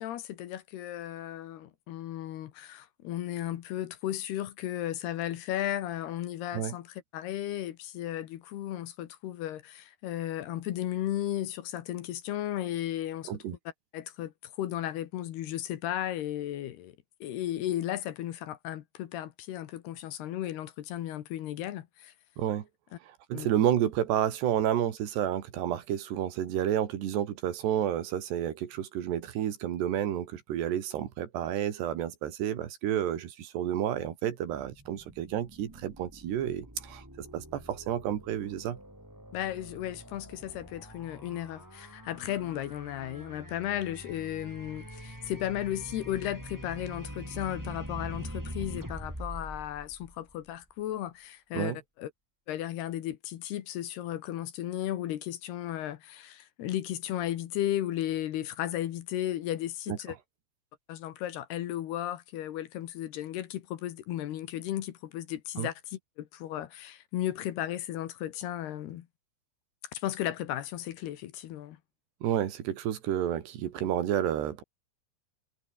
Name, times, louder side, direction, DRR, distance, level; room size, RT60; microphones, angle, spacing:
voice 1, 0.0-13.4 13.9-17.0 17.2-22.1 23.3-23.5 39.3-52.1 52.5-60.2 60.9-69.1 69.9-71.8, left 12 dB, 70° left, 3.2 m, -35 dB
voice 2, 23.1-38.8 51.5-51.8 59.9-60.0 65.6-65.7 72.2-74.6, right 10 dB, 70° right, 4.1 m, -30 dB
sound 1, 34.6-50.7, equal, 5° right, 5.2 m, -44 dB
omnidirectional pair, 5.2 m